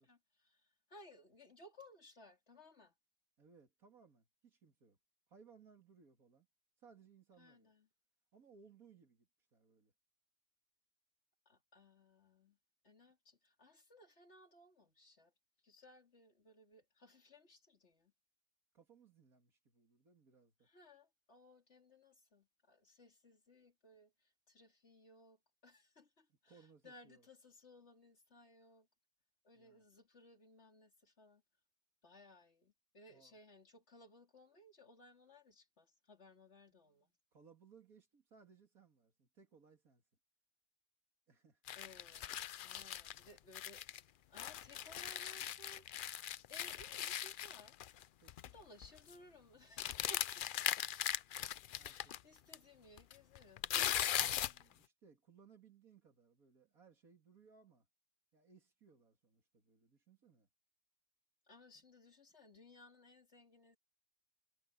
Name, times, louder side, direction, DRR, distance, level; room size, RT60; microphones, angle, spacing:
voice 1, 0.0-2.9 7.4-7.9 11.5-12.6 12.8-15.3 15.6-18.1 20.6-28.9 29.4-31.4 32.0-37.1 41.7-45.9 46.5-47.8 48.5-50.5 51.8-53.7 61.4-63.8, left 1 dB, 50° left, 3.8 m, -62 dB
voice 2, 3.4-5.0 5.3-6.5 6.8-7.7 8.3-9.9 18.7-20.7 26.5-27.3 29.5-29.8 33.1-33.4 37.3-40.0 41.3-41.6 48.2-48.5 50.4-50.5 51.8-52.1 54.2-57.9 58.3-60.5, right 5 dB, 80° right, 2.9 m, -65 dB
sound 1, 41.7-44.0 44.4-48.0 48.3-48.5 48.8-49.1 49.8-52.2 52.5-52.6 53.0-54.6, left 11 dB, 90° left, 0.4 m, -39 dB
omnidirectional pair, 1.5 m